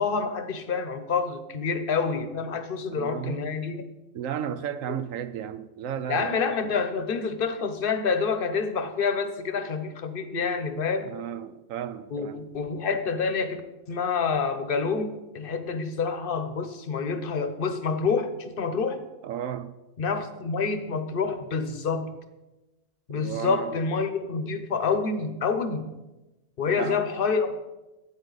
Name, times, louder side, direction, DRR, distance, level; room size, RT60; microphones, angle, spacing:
voice 1, 0.0-3.8 4.9-5.0 6.1-11.1 12.1-13.6 13.9-19.0 20.0-22.2 23.1-25.9 26.6-27.6, left 5 dB, 45° left, 1.0 m, -27 dB
voice 2, 3.0-3.5 4.1-6.4 11.0-12.4 19.2-19.7 23.1-23.8 26.7-27.0, right 9 dB, 75° right, 1.0 m, -34 dB
12.5 x 9.0 x 4.0 m
omnidirectional pair, 1.4 m